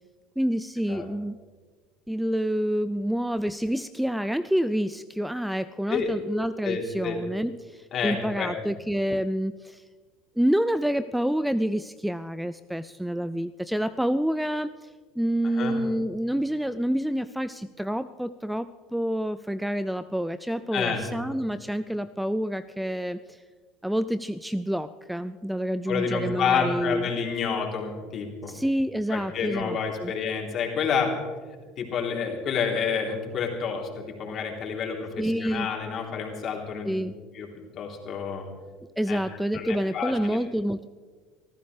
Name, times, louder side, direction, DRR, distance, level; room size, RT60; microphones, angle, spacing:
voice 1, 0.4-1.4 2.1-9.8 10.4-14.9 15.2-23.4 23.8-27.1 28.5-30.1 35.2-35.7 36.9-37.1 39.0-40.9, equal, 5° right, 14 dB, 0.4 m, -28 dB
voice 2, 6.6-7.2 7.9-8.5 15.6-15.7 20.7-21.0 25.9-28.5 29.1-31.1 31.8-37.0 37.3-37.5 37.7-38.5 39.1-39.2 39.5-40.4, left 6 dB, 45° left, 0 dB, 3.4 m, -29 dB
25.5 x 14.5 x 3.3 m, 1.5 s
hypercardioid pair, 80°, 0 cm